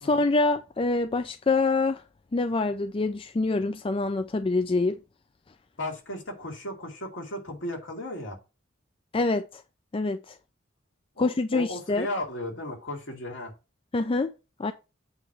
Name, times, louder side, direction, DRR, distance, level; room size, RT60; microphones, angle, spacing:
voice 1, 0.0-2.0 2.3-5.0 9.1-9.6 9.9-10.3 11.2-12.1 13.9-14.3 14.6-14.7, left 3 dB, 30° left, 0.4 m, -25 dB
voice 2, 5.8-8.4 11.2-13.5, left 1 dB, 65° left, 2.6 m, -35 dB
8.0 x 3.1 x 6.2 m
head